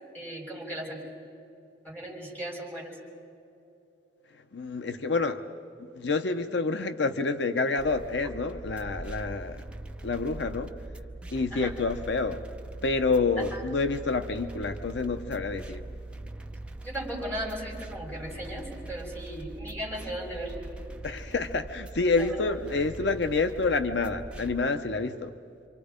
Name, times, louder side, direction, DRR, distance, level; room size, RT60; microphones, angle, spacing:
voice 1, 0.1-1.0 1.8-3.0 11.5-11.7 13.4-13.6 16.8-20.6 22.2-22.4, right 1 dB, 10° left, -5 dB, 6.5 m, -36 dB
voice 2, 4.5-5.4 5.9-9.6 10.0-10.7 11.3-12.4 12.8-15.8 21.0-25.3, left 3 dB, 75° left, 8 dB, 0.8 m, -28 dB
sound 1, 7.8-24.7, right 2 dB, 5° right, 0.8 m, -42 dB
28.0 x 25.5 x 5.1 m, 2.7 s
head